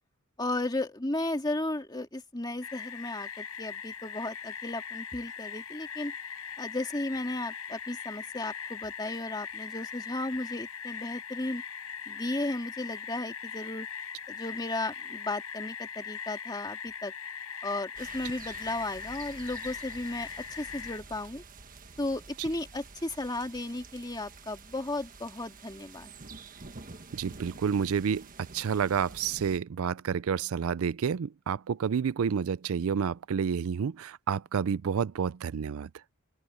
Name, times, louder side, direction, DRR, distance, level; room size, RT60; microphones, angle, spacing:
voice 1, 0.4-6.1 6.6-11.6 12.1-13.9 14.3-17.1 17.6-21.4 22.0-26.1, left 2 dB, 20° left, 2.2 m, -35 dB
sound 1, 2.6-21.0, left 7 dB, 85° left, 4.1 m, -40 dB
sound 2, 18.0-29.6, right 4 dB, 40° right, 1.4 m, -49 dB
voice 2, 27.1-28.3 28.5-35.9, right 7 dB, 65° right, 0.4 m, -29 dB
open air
head